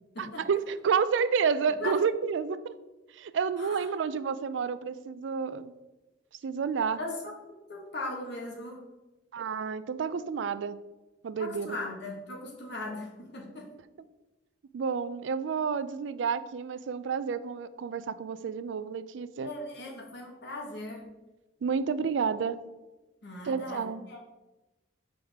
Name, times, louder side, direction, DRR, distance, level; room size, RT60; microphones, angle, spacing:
voice 1, 0.2-2.7 3.1-5.8 6.4-7.0 9.3-10.8 11.2-11.8 14.7-19.5 21.6-22.6 23.4-24.0, right 6 dB, 70° right, 14 dB, 0.4 m, -30 dB
voice 2, 6.9-7.4 7.7-8.8 11.4-13.7 19.4-21.0 23.2-24.2, left 2 dB, 65° left, 1 dB, 1.4 m, -38 dB
6.2 x 4.9 x 3.5 m, 1.1 s
head